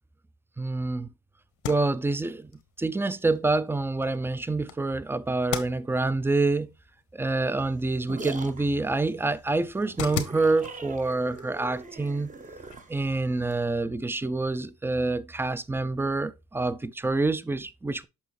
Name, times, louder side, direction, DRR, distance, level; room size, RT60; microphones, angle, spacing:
voice 1, 0.6-1.1 1.7-2.5 2.8-6.7 7.1-12.3 12.9-18.1, right 3 dB, 10° right, 0.4 m, -27 dB
sound 1, 1.5-13.1, left 10 dB, 80° left, 1.0 m, -42 dB
sound 2, 7.6-13.6, right 4 dB, 25° right, 0.8 m, -43 dB
7.1 x 5.5 x 3.1 m
cardioid pair, 90°, 30 cm